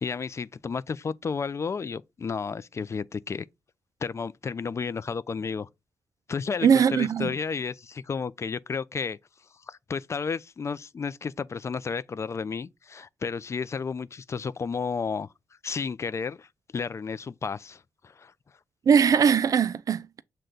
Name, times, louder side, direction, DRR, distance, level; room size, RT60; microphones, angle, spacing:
voice 1, 0.0-3.5 4.0-5.7 6.3-9.2 9.7-15.3 15.6-18.3, left 5 dB, 45° left, 0.3 m, -32 dB
voice 2, 6.6-7.3 18.9-20.2, right 7 dB, 55° right, 0.4 m, -21 dB
6.4 x 2.2 x 3.7 m
supercardioid pair, 50°, 7 cm